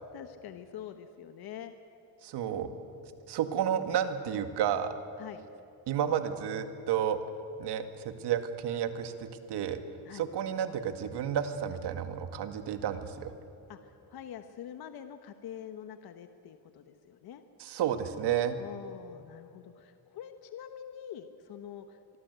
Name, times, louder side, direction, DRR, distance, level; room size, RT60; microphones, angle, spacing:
voice 1, 0.1-1.7 5.2-5.4 10.0-10.2 13.7-13.8 14.1-17.4 18.6-22.2, left 9 dB, 65° left, 8 dB, 1.2 m, -45 dB
voice 2, 2.2-2.7 3.3-5.0 5.9-7.2 7.6-9.8 10.1-13.3 17.6-18.6, right 9 dB, 85° right, 9 dB, 2.0 m, -31 dB
25.0 x 23.5 x 8.2 m, 2.8 s
cardioid pair, 170°, 40 cm